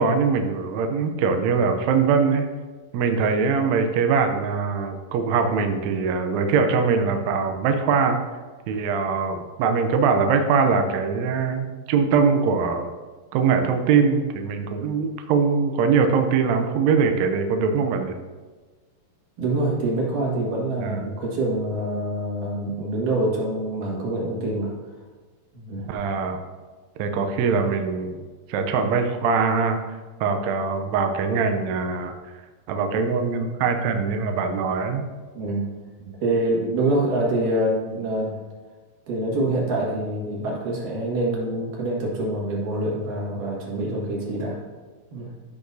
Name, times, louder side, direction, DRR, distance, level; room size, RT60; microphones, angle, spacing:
voice 1, 0.0-2.5 2.9-8.2 8.7-12.9 13.3-18.1 20.8-21.1 25.9-26.4 27.0-28.2 28.5-29.8 30.2-32.1 32.7-35.0 36.1-36.2, right 5 dB, 85° right, 5 dB, 1.5 m, -22 dB
voice 2, 19.4-24.7 25.5-25.9 35.3-35.7 36.2-38.4 39.1-44.6 45.1-45.3, right 1 dB, 65° right, -3 dB, 3.3 m, -25 dB
13.5 x 6.0 x 2.7 m, 1.4 s
omnidirectional pair, 4.1 m